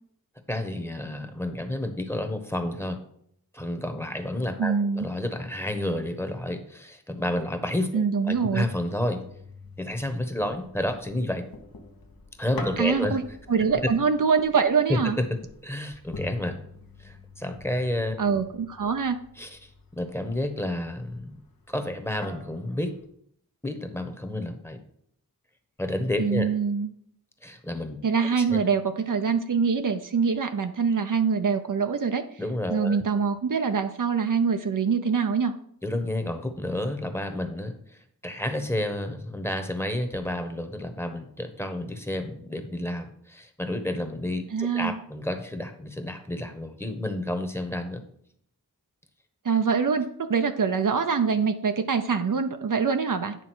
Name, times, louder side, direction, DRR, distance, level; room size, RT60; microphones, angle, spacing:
voice 1, 0.5-3.0 3.5-9.2 9.8-11.5 12.4-13.2 14.9-16.6 17.0-18.2 19.4-19.7 20.0-21.4 21.7-22.9 23.6-24.8 25.8-26.5 27.4-28.6 32.4-33.0 35.8-37.7 38.2-48.0, left 1 dB, 5° left, 6 dB, 1.1 m, -30 dB
voice 2, 4.6-5.1 7.9-8.6 12.8-13.2 13.5-15.2 18.2-19.2 26.2-26.9 28.0-32.2 32.7-35.5 44.5-45.0 49.4-53.4, right 5 dB, 60° right, 7 dB, 0.7 m, -24 dB
sound 1, 8.3-23.1, left 3 dB, 70° left, 1.1 m, -46 dB
9.2 x 3.6 x 6.1 m, 0.67 s
wide cardioid pair, 65°, 36 cm